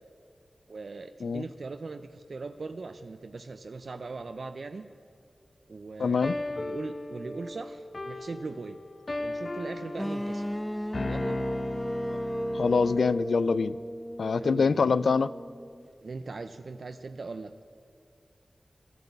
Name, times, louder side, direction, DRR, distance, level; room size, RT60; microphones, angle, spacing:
voice 1, 0.7-4.9 5.7-6.2 6.5-8.8 9.2-10.5 11.1-11.4 14.4-14.9 16.0-17.5, right 3 dB, 70° right, 8 dB, 0.5 m, -40 dB
voice 2, 6.0-6.3 12.1-12.2 12.5-13.8 14.2-15.3, left 5 dB, 85° left, 17 dB, 0.3 m, -25 dB
sound 1, 6.2-13.2, left 2 dB, 55° left, 0.7 m, -36 dB
sound 2, 10.0-15.8, equal, 5° left, 0.5 m, -35 dB
12.0 x 10.5 x 8.0 m, 2.2 s
cardioid pair, 45°, 0 cm